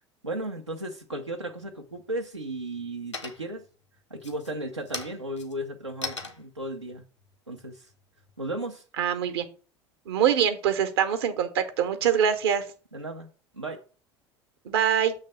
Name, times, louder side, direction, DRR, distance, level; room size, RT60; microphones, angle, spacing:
voice 1, 0.2-3.6 4.1-7.0 7.5-7.9 8.4-8.8 12.9-13.3 13.5-13.8, right 1 dB, 90° right, 1 dB, 0.6 m, -35 dB
sound 1, 1.5-2.0 2.5-2.9 3.1-3.7 4.1-8.6, left 4 dB, 90° left, 0.9 m, -40 dB
voice 2, 9.0-9.4 10.1-12.7 14.6-15.1, right 8 dB, 65° right, 9 dB, 0.9 m, -24 dB
7.3 x 3.3 x 5.6 m, 0.37 s
figure-of-eight pair, 75°, 15 cm